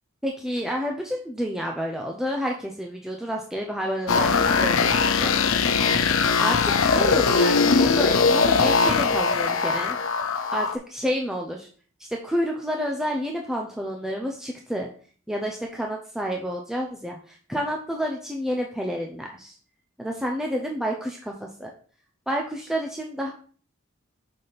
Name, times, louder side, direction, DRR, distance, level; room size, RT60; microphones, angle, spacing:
voice 1, 0.2-5.3 6.4-10.0 10.5-11.7 12.1-14.9 15.3-19.5 20.0-21.3 21.6-21.7 22.3-23.3, equal, ahead, 0 dB, 0.5 m, -29 dB
sound 1, 4.1-10.8, left 5 dB, 85° left, 0.6 m, -21 dB
5.8 x 5.0 x 4.0 m, 0.43 s
head